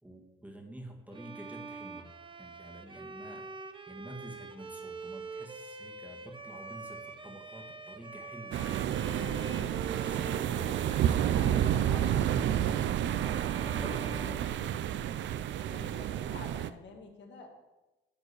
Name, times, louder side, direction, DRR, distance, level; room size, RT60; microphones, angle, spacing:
voice 1, 0.0-2.1 2.4-8.6 9.2-13.0 13.6-14.7, right 1 dB, 5° right, 1 dB, 1.8 m, -47 dB
Bowed string instrument, 1.1-15.2, right 3 dB, 25° right, 0.9 m, -45 dB
sound 1, 8.5-16.7, right 10 dB, 70° right, 0.5 m, -30 dB
voice 2, 15.7-17.5, left 4 dB, 65° left, 3 dB, 1.8 m, -49 dB
11.0 x 4.4 x 6.9 m, 1.1 s
cardioid pair, 90°, 20 cm